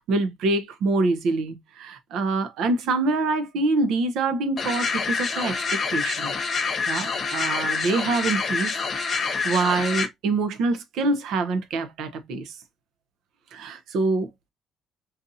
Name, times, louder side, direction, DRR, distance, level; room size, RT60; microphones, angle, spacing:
voice 1, 0.0-6.3 6.9-8.7 9.0-12.5 13.5-14.3, right 3 dB, 70° right, 0.6 m, -25 dB
sound 1, 4.6-10.1, left 5 dB, 35° left, 0.9 m, -27 dB
3.9 x 2.6 x 2.6 m
cardioid pair, 170°, 0 cm